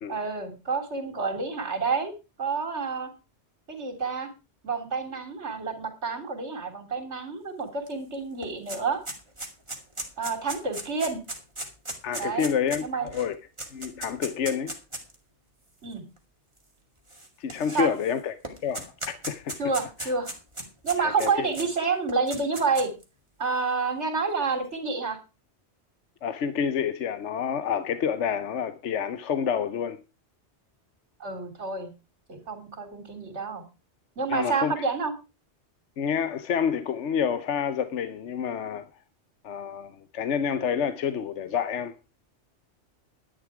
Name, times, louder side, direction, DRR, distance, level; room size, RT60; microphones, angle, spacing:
voice 1, 0.1-2.1 2.4-3.1 3.7-4.3 4.6-9.0 10.2-11.2 12.2-12.5 12.8-13.1 15.8-16.0 17.7-17.9 19.6-20.3 20.8-22.9 23.4-25.2 31.2-31.9 32.3-33.6 34.2-35.1, right 4 dB, 80° right, 3.7 m, -29 dB
sound 1, 7.9-8.0 8.2-15.1 15.9-16.0 17.1-18.1 18.4-21.7 22.1-23.0, right 1 dB, 25° right, 2.3 m, -37 dB
voice 2, 12.0-12.8 13.1-13.4 13.7-14.8 17.4-18.3 18.6-19.6 20.0-20.1 21.0-21.5 26.2-30.0 34.3-34.8 36.0-38.9 39.4-41.9, left 7 dB, 85° left, 1.2 m, -28 dB
11.5 x 10.5 x 4.8 m
omnidirectional pair, 1.2 m